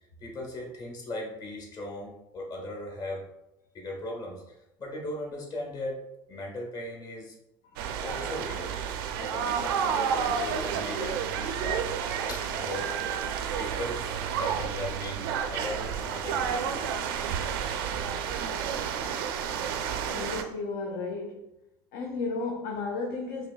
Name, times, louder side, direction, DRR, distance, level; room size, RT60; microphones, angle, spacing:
voice 1, 0.2-3.2 3.7-6.0 6.3-7.4 8.0-8.8 9.2-11.9 12.2-13.0 13.6-16.9, left 1 dB, 35° left, 0 dB, 1.2 m, -38 dB
sound 1, 7.8-20.4, right 7 dB, 85° right, 0.4 m, -30 dB
voice 2, 20.1-21.5 21.9-23.5, left 3 dB, 75° left, 1 dB, 0.6 m, -34 dB
4.9 x 3.0 x 2.2 m, 0.88 s
supercardioid pair, 110°, 11 cm